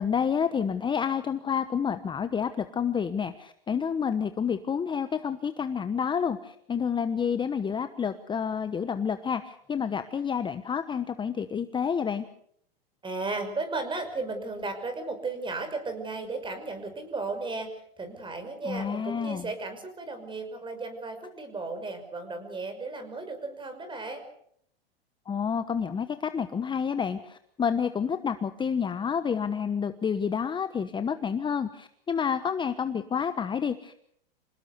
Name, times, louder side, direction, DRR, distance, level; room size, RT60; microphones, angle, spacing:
voice 1, 0.0-12.3 18.6-19.5 25.3-34.1, left 7 dB, 15° left, 10 dB, 1.1 m, -29 dB
voice 2, 13.0-24.3, right 3 dB, 15° right, 8 dB, 5.9 m, -35 dB
27.0 x 18.5 x 7.0 m, 0.68 s
hypercardioid pair, 115°, 30 cm